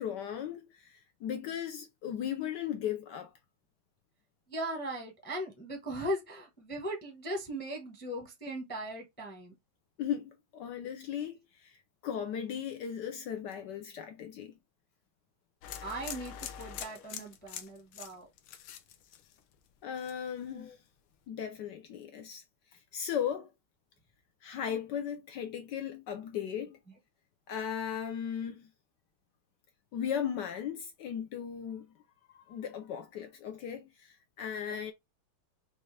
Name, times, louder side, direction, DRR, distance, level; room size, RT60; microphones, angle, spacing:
voice 1, 0.0-3.3 10.0-11.8 12.0-14.5 19.8-20.7 21.3-22.4 22.7-23.5 24.4-26.8 27.5-28.7 29.9-31.9 32.3-34.9, left 9 dB, 70° left, 1.1 m, -37 dB
voice 2, 4.5-9.5 15.8-18.3 20.5-20.8 34.7-34.8, right 1 dB, 10° left, 0.6 m, -38 dB
sound 1, 15.6-19.7 20.0-20.5, left 9 dB, 85° left, 1.6 m, -44 dB
5.5 x 2.4 x 3.2 m
omnidirectional pair, 2.3 m